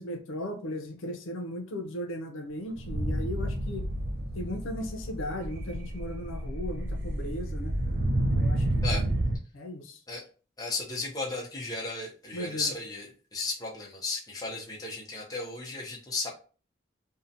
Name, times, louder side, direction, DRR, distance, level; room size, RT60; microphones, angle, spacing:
voice 1, 0.0-3.9 4.3-7.7 8.4-9.2 9.5-10.0 12.3-12.7, left 1 dB, 80° left, 4 dB, 0.5 m, -37 dB
sound 1, 2.7-9.4, right 1 dB, 55° right, 0.4 m, -30 dB
voice 2, 10.6-16.3, left 3 dB, 20° left, -2 dB, 0.5 m, -34 dB
2.7 x 2.1 x 2.5 m, 0.38 s
head